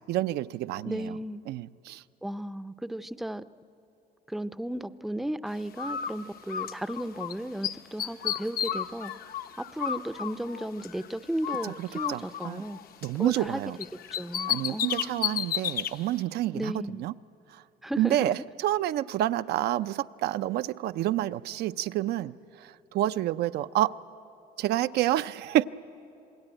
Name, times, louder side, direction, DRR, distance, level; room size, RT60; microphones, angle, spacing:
voice 1, 0.1-1.2 1.5-2.0 11.6-12.6 13.0-13.8 14.5-17.1 17.5-17.6 18.0-23.9 24.6-25.6, right 14 dB, 75° right, 0.5 m, -29 dB
voice 2, 0.8-1.4 2.2-3.5 4.3-9.1 9.6-12.8 13.2-13.6 14.1-15.5 16.5-17.1 17.8-18.3, right 1 dB, ahead, 0.5 m, -35 dB
Bird, 5.8-7.3 7.6-11.1 11.4-13.5 13.8-15.9, left 9 dB, 60° left, 0.9 m, -33 dB
27.0 x 21.0 x 9.0 m
cardioid pair, 110°, 17 cm